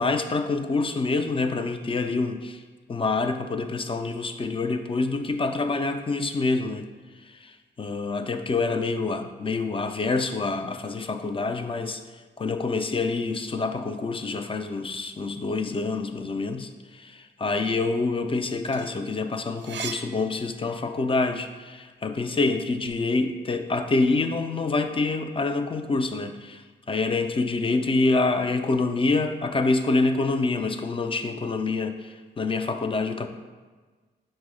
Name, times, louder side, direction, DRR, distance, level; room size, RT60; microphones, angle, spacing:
voice 1, 0.0-2.6 2.9-6.9 7.3-12.0 12.4-33.3, left 3 dB, 30° left, 7 dB, 0.4 m, -26 dB
sound 1, 18.4-21.1 21.6-23.0, right 6 dB, 70° right, 0.4 m, -40 dB
5.1 x 2.1 x 4.8 m, 1.4 s
cardioid pair, 60°, 19 cm